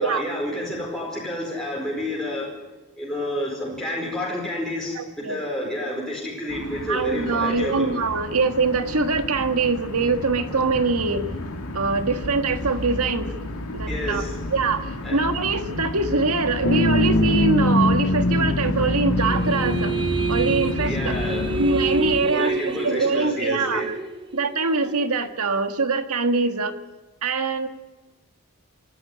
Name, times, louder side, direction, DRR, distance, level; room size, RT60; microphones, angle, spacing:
voice 1, 0.0-2.5 3.0-7.9 13.8-14.4 15.0-15.2 20.8-21.5 22.3-23.9, left 1 dB, ahead, -4 dB, 4.8 m, -29 dB
voice 2, 4.9-5.4 6.9-11.3 11.7-13.3 13.7-14.2 14.5-19.9 20.3-21.2 21.5-23.9 24.3-26.7 27.2-27.7, right 4 dB, 85° right, 8 dB, 1.7 m, -23 dB
sound 1, 6.5-22.2, left 1 dB, 85° left, 2.3 m, -31 dB
sound 2, 16.6-22.4, left 2 dB, 50° left, 0.9 m, -24 dB
sound 3, 19.2-25.1, right 4 dB, 20° right, 0.9 m, -29 dB
26.0 x 11.5 x 9.9 m, 1.2 s
head